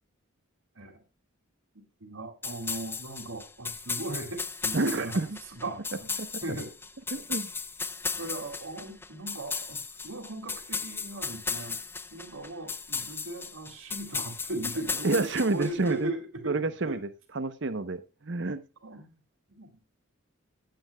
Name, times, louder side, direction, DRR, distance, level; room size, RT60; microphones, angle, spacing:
voice 1, 2.0-5.3 5.6-6.7 8.2-11.8 12.1-17.0 18.8-19.2 19.5-19.8, right 2 dB, 75° right, 4 dB, 2.4 m, -38 dB
sound 1, 2.4-15.9, left 5 dB, 10° left, 0.4 m, -36 dB
voice 2, 4.7-5.3 6.2-6.4 7.1-7.5 15.0-16.1 16.5-17.0 17.3-18.6, right 3 dB, 55° right, 12 dB, 0.8 m, -29 dB
17.0 x 8.6 x 2.2 m, 0.27 s
head